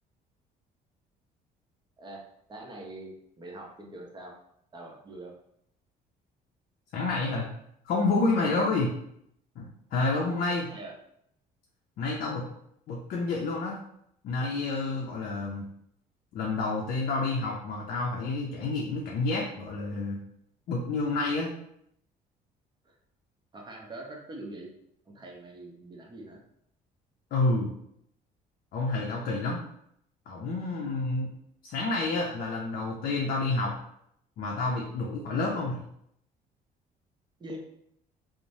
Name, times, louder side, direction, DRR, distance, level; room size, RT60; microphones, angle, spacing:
voice 1, 2.5-4.3 4.7-5.3 8.4-8.5 10.7-10.9 22.8-22.9 23.5-24.7 25.1-26.4 34.9-35.1 37.4-37.6, right 2 dB, 25° right, -1 dB, 0.7 m, -43 dB
voice 2, 6.9-7.5 7.8-8.9 9.6-10.7 12.0-12.5 12.9-13.8 14.2-15.6 16.3-20.2 20.7-21.5 27.3-27.7 28.7-29.6 30.3-31.3 31.6-33.7 34.4-35.8, left 3 dB, 60° left, -2 dB, 0.5 m, -29 dB
2.9 x 2.0 x 2.6 m, 0.73 s
cardioid pair, 110°, 17 cm